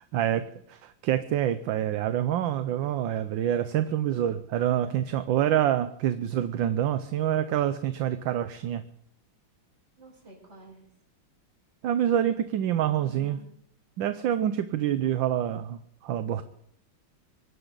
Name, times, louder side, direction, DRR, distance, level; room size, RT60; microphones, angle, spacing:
voice 1, 0.1-8.8 11.8-13.4 14.0-16.4, right 11 dB, 75° right, 11 dB, 1.4 m, -27 dB
voice 2, 4.7-5.1 10.0-10.9 13.0-13.5, right 2 dB, 30° right, -1 dB, 5.8 m, -49 dB
24.0 x 12.5 x 3.9 m, 0.67 s
omnidirectional pair, 2.2 m